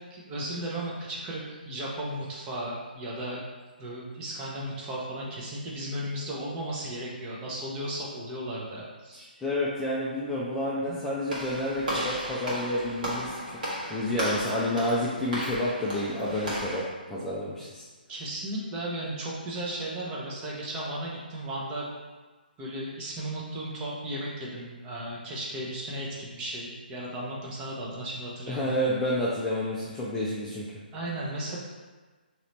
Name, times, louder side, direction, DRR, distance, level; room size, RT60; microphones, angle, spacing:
voice 1, 0.1-3.5 3.8-9.2 10.7-11.0 18.1-21.9 22.6-28.8 30.9-31.6, right 1 dB, 20° right, -5 dB, 0.7 m, -35 dB
voice 2, 9.1-13.3 13.8-16.8 17.1-17.9 28.5-30.7, left 1 dB, 5° left, -8 dB, 0.4 m, -29 dB
Walk footsteps / Slam, 11.3-16.8, equal, 55° right, 1.4 m, -34 dB
3.8 x 3.0 x 3.2 m, 1.4 s
figure-of-eight pair, 135°, 5 cm